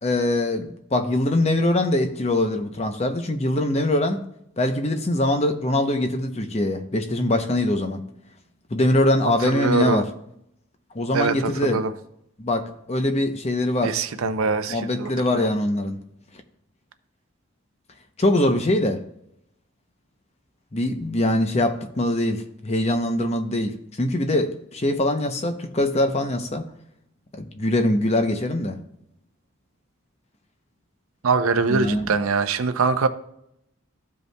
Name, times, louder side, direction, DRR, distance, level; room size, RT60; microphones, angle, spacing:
voice 1, 0.0-4.2 4.6-8.0 8.7-10.1 10.9-11.8 12.4-14.0 14.7-16.0 18.2-19.0 20.7-26.7 27.3-28.8 31.7-32.1, left 1 dB, 30° left, 0.6 m, -23 dB
voice 2, 9.5-10.0 11.1-11.9 13.8-15.5 31.2-33.1, right 4 dB, 75° right, 0.5 m, -23 dB
13.5 x 5.3 x 2.2 m
head